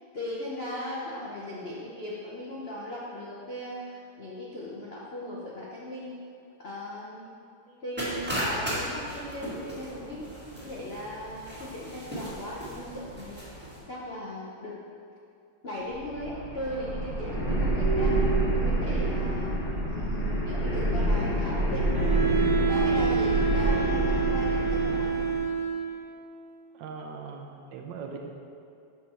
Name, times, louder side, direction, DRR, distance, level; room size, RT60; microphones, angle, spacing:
voice 1, 0.1-6.1 6.6-7.4 7.8-10.3 10.6-14.8 15.6-19.5 19.8-22.0 22.7-25.4, left 1 dB, 65° left, -6 dB, 0.6 m, -38 dB
sound 1, 8.0-13.8, equal, 5° right, 1.2 m, -36 dB
sound 2, 15.8-25.4, right 1 dB, 90° left, 2.6 m, -27 dB
Wind instrument woodwind instrument, 21.9-26.0, right 6 dB, 10° left, 1.2 m, -27 dB
voice 2, 26.7-28.3, right 5 dB, 75° right, 2 dB, 1.2 m, -40 dB
6.1 x 5.7 x 4.3 m, 2.6 s
omnidirectional pair, 2.2 m